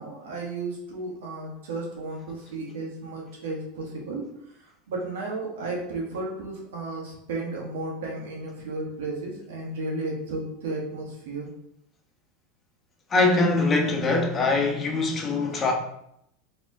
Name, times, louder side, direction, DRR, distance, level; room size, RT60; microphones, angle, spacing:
voice 1, 0.0-11.5, right 2 dB, 80° right, 1.5 m, -34 dB
voice 2, 13.1-15.7, left 3 dB, 25° left, 1.0 m, -23 dB
4.1 x 3.4 x 3.6 m
supercardioid pair, 110°, 0 cm